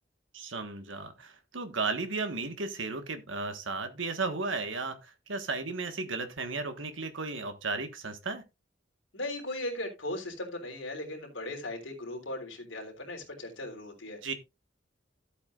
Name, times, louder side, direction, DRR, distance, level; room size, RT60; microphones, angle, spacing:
voice 1, 0.3-8.4 14.2-14.3, right 3 dB, 85° right, 1.5 m, -34 dB
voice 2, 9.1-14.2, left 1 dB, 85° left, 3.5 m, -38 dB
13.5 x 8.2 x 2.5 m
head